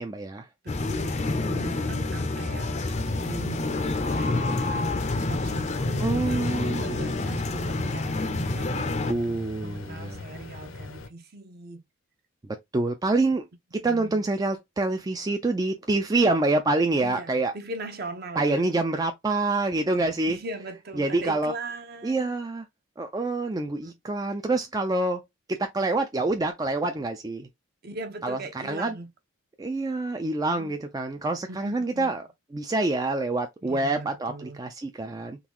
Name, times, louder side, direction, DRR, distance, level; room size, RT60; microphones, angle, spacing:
voice 1, 0.0-0.5 6.0-7.3 8.7-8.8 9.1-10.2 12.7-13.4 13.8-17.5 18.4-20.4 21.0-21.5 22.0-22.7 23.0-25.2 25.5-27.5 28.2-28.4 28.6-29.0 29.6-32.2 32.5-35.4, right 2 dB, 20° right, 0.3 m, -26 dB
voice 2, 0.6-4.8 5.3-11.8 13.8-14.2 17.0-18.6 20.3-22.3 23.8-23.9 27.8-29.1 30.6-30.7 31.5-32.2 33.6-34.6, right 2 dB, 50° right, 0.8 m, -40 dB
sound 1, 0.7-9.1, left 2 dB, 35° left, 0.5 m, -28 dB
sound 2, 2.9-11.1, left 2 dB, 70° left, 0.7 m, -40 dB
3.8 x 2.3 x 2.9 m
head